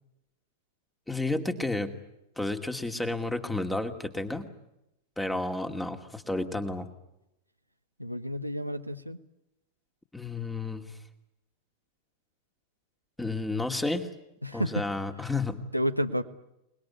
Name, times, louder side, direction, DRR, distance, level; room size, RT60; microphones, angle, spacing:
voice 1, 1.1-1.9 2.4-4.5 5.2-6.9 10.1-10.9 13.2-14.1 14.5-15.6, left 2 dB, 5° left, 6 dB, 2.4 m, -31 dB
voice 2, 8.0-9.2 14.4-14.9 15.7-16.2, equal, 90° right, 7 dB, 1.2 m, -30 dB
28.5 x 20.5 x 9.7 m, 0.89 s
figure-of-eight pair, 90°, 0 cm